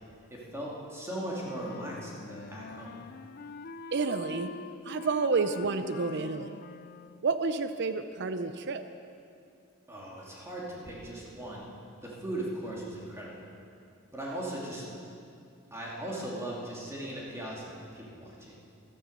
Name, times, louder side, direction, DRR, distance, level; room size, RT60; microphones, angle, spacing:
voice 1, 0.3-2.9 9.9-11.6 12.0-13.4 14.1-14.8 15.7-18.6, right 1 dB, 15° right, -4 dB, 2.5 m, -38 dB
Wind instrument woodwind instrument, 1.4-7.3, left 4 dB, 45° left, 0.4 m, -45 dB
voice 2, 3.9-4.5 4.8-6.5 7.2-8.8, right 4 dB, 55° right, 10 dB, 0.5 m, -30 dB
14.0 x 12.5 x 6.6 m, 2.4 s
head